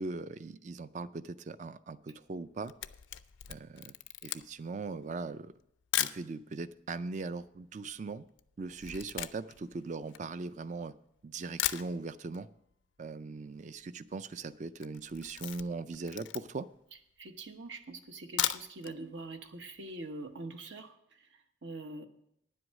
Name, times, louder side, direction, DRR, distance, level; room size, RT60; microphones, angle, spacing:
voice 1, 0.0-2.7 3.5-3.9 4.2-5.5 6.0-8.2 8.6-10.9 11.2-12.5 13.0-16.7, right 3 dB, 40° right, 15 dB, 0.4 m, -40 dB
Camera, 2.4-6.3 7.0-7.1 7.2-10.9 11.3-11.4 11.6-12.4 12.7-12.8 13.1-13.2 13.4-13.8 14.1-14.4 14.7-16.8 17.3-17.4 18.2-19.0 19.3-19.4 19.8-19.9, left 13 dB, 75° left, 0.4 m, -37 dB
voice 2, 17.2-22.1, right 2 dB, 70° right, 7 dB, 1.0 m, -44 dB
9.9 x 7.9 x 6.3 m, 0.75 s
head